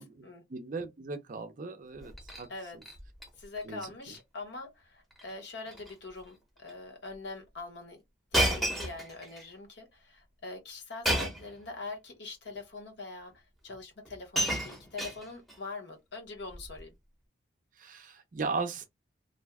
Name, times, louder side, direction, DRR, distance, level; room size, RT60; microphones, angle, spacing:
voice 1, 0.5-2.5 3.7-3.9 17.8-18.9, right 4 dB, 40° right, 0.5 m, -37 dB
Shatter, 2.0-2.5 2.8-3.3 3.6-3.9 4.1-4.2 5.1-5.3 5.7-5.9 6.7-6.8 8.3-9.4 11.0-11.5 12.5-12.6 13.7-13.8 14.0-15.6 16.5-16.8, right 1 dB, ahead, 0.8 m, -31 dB
voice 2, 3.4-8.0 8.3-16.9, left 3 dB, 60° left, 1.0 m, -43 dB
2.6 x 2.2 x 3.4 m
head